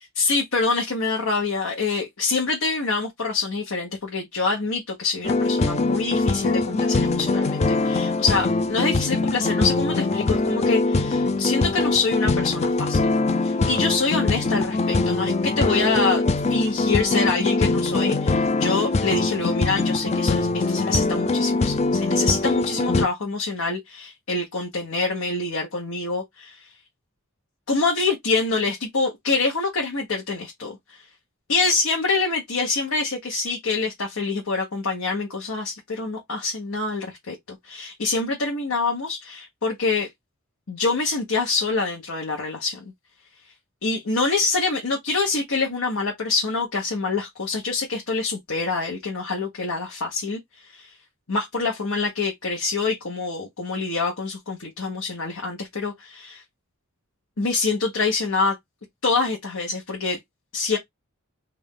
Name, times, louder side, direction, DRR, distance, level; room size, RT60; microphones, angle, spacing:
voice 1, 0.2-13.1 13.4-16.2 16.5-26.7 27.7-31.0 31.5-40.1 40.7-42.8 43.8-50.9 51.3-56.4 57.4-58.6 59.0-60.2 60.5-60.8, left 3 dB, 80° left, 1.2 m, -26 dB
sound 1, 5.2-23.1, left 3 dB, 30° left, 0.4 m, -22 dB
3.4 x 2.6 x 3.7 m
head